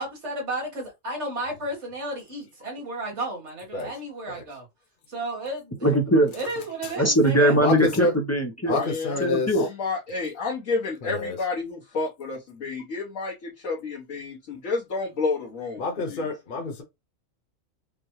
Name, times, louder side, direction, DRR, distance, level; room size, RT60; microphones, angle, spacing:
voice 1, 0.0-4.7 5.1-5.8 6.3-7.6, right 1 dB, 60° right, 2.1 m, -33 dB
voice 2, 5.8-6.3 7.0-8.8 9.2-9.7, right 1 dB, 15° left, 0.6 m, -20 dB
voice 3, 7.6-8.1 8.7-9.5 11.0-11.4 15.8-16.8, left 3 dB, 45° left, 1.0 m, -28 dB
voice 4, 8.7-9.2 9.5-16.3, left 4 dB, 85° left, 1.6 m, -30 dB
5.2 x 2.2 x 3.1 m
omnidirectional pair, 1.4 m